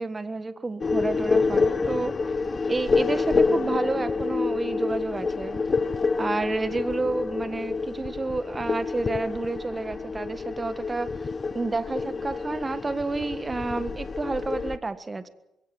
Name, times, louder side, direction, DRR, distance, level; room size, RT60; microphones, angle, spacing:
voice 1, 0.0-2.1 2.7-5.6 6.2-11.1 11.5-15.3, right 3 dB, 25° right, 12 dB, 1.6 m, -30 dB
sound 1, 0.8-14.8, left 4 dB, 35° left, 1.0 m, -27 dB
22.5 x 16.5 x 7.9 m, 0.90 s
cardioid pair, 90°, 0 cm